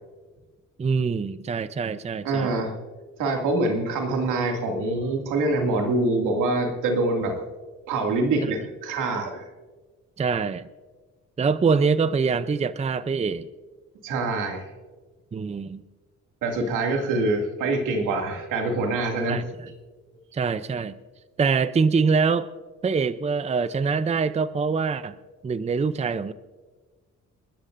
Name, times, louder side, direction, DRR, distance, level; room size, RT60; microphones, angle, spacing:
voice 1, 0.8-2.5 8.4-8.5 10.2-10.6 11.4-13.5 15.3-15.8 19.3-19.4 20.3-21.0 21.4-22.5 22.8-25.2 25.4-26.3, right 5 dB, 20° right, 14 dB, 0.5 m, -24 dB
voice 2, 2.2-2.8 3.2-7.4 7.9-9.4 14.0-14.6 16.4-19.4, right 2 dB, 90° right, 2 dB, 2.4 m, -25 dB
28.0 x 13.0 x 2.6 m, 1.3 s
cardioid pair, 90°, 30 cm